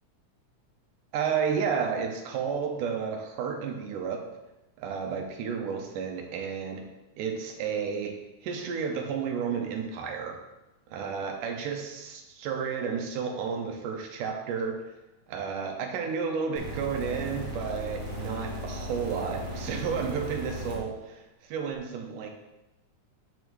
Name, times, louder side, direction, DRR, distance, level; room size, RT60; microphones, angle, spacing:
voice 1, 1.1-4.2 4.8-6.9 7.2-10.5 10.9-14.8 15.3-22.3, right 6 dB, 90° right, 3 dB, 2.4 m, -32 dB
sound 1, 16.5-20.8 21.7-21.8, equal, 75° right, 0.5 m, -36 dB
9.1 x 5.5 x 3.1 m, 0.99 s
omnidirectional pair, 3.6 m